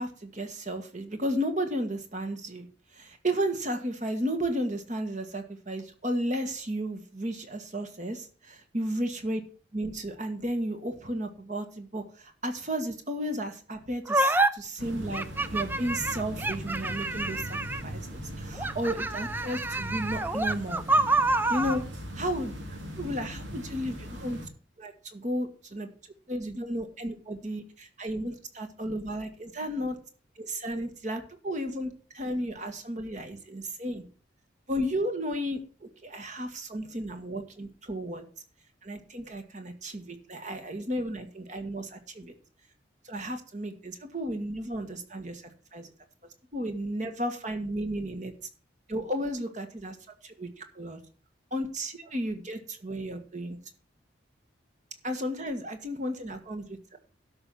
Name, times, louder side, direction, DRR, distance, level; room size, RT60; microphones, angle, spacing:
voice 1, 0.0-2.7 2.9-9.4 9.7-15.3 15.5-20.8 21.5-21.8 22.2-24.4 24.8-25.9 26.3-30.0 30.4-34.0 34.7-38.2 38.8-42.3 43.0-45.4 45.7-45.9 46.5-48.3 48.9-50.0 50.2-51.0 51.5-53.6 55.0-57.0, equal, 40° right, 7 dB, 1.6 m, -33 dB
sound 1, 14.1-14.5 15.1-17.9 18.6-21.8, right 2 dB, 10° right, 0.5 m, -27 dB
sound 2, 14.8-24.5, equal, 85° right, 2.9 m, -40 dB
12.5 x 5.6 x 6.1 m, 0.40 s
head